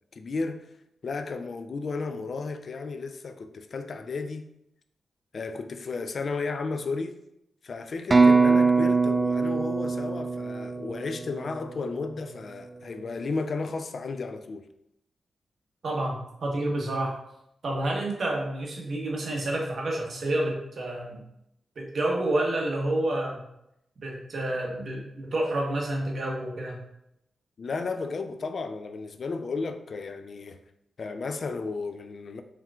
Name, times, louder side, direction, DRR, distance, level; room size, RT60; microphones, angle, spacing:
voice 1, 0.1-0.7 1.0-4.5 5.3-7.2 7.6-14.7 27.6-30.6 31.0-32.4, left 4 dB, 60° left, 0.3 m, -33 dB
sound 1, 8.1-11.9, right 4 dB, 35° right, 0.4 m, -22 dB
voice 2, 15.8-17.2 17.6-21.2 21.8-23.5 24.0-26.8, right 1 dB, 65° right, 1.0 m, -29 dB
4.3 x 3.6 x 2.4 m
cardioid pair, 75°, 0 cm